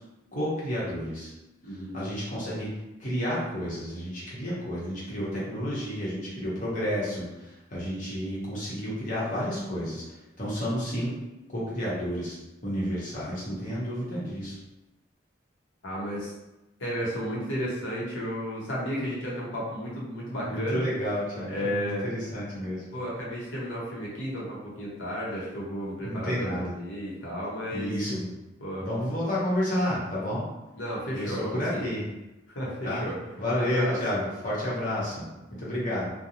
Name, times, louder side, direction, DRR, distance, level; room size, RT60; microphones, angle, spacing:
voice 1, 0.3-1.3 1.9-2.7 3.0-7.3 7.7-10.0 10.4-11.1 11.5-12.4 12.6-14.5 20.4-22.8 26.0-26.7 27.7-28.3 28.8-30.4 31.1-32.0 32.8-33.0 33.4-35.3 35.6-36.1, equal, 40° left, -7 dB, 1.0 m, -30 dB
voice 2, 1.6-2.0 15.8-16.3 16.8-20.9 21.5-22.1 22.9-28.0 28.6-28.9 30.8-31.9 32.5-33.1 33.5-34.2, equal, 80° left, -5 dB, 0.9 m, -33 dB
2.5 x 2.2 x 2.9 m, 0.99 s
head